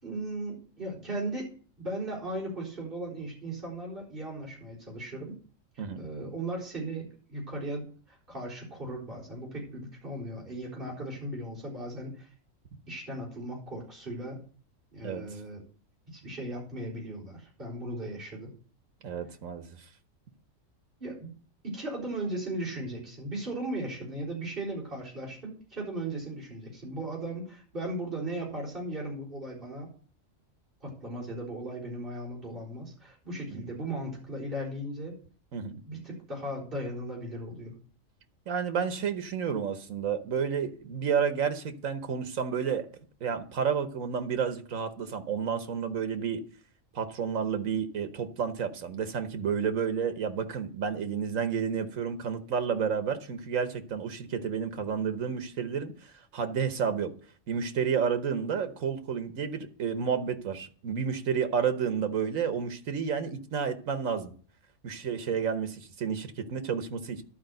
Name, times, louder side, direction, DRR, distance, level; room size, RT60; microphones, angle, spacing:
voice 1, 0.0-1.5 1.8-5.4 5.7-12.3 12.9-14.4 14.9-15.6 16.1-18.5 21.0-21.3 21.6-29.9 30.8-35.1 35.9-37.7, right 1 dB, 40° right, 4.3 m, -37 dB
voice 2, 19.0-19.6 33.5-33.6 35.5-35.8 38.5-42.9 43.2-46.4 46.9-57.1 57.5-64.3 64.8-67.2, right 7 dB, 90° right, 1.4 m, -31 dB
12.0 x 4.8 x 7.7 m
omnidirectional pair, 1.4 m